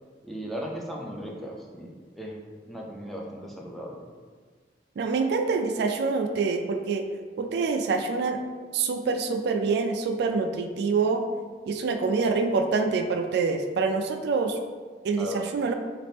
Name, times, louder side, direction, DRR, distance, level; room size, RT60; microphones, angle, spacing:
voice 1, 0.2-2.4 2.6-4.1 15.2-15.4, equal, ahead, -2 dB, 0.5 m, -37 dB
voice 2, 5.0-7.1 7.4-8.4 8.7-11.2 11.7-14.6 15.0-15.3 15.5-15.7, right 4 dB, 65° right, 6 dB, 0.3 m, -26 dB
3.9 x 2.5 x 3.4 m, 1.5 s
head